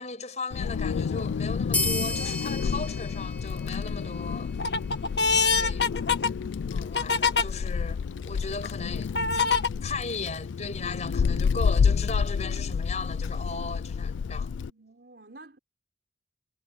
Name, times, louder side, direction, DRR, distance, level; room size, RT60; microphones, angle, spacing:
voice 1, 0.0-4.5 5.3-5.8 6.7-8.0 8.2-9.1 9.8-14.5, left 4 dB, 40° left, 6.4 m, -36 dB
Wind, 0.5-14.7, left 6 dB, 90° left, 0.4 m, -29 dB
sound 1, 1.0-1.3 1.9-2.6 3.1-3.7 4.2-7.5 8.1-8.2 9.2-9.7, left 5 dB, 65° left, 1.7 m, -25 dB
sound 2, 1.7-4.8, left 2 dB, 10° left, 1.8 m, -33 dB
voice 2, 5.3-6.5 14.7-15.6, right 2 dB, 60° right, 4.2 m, -52 dB
head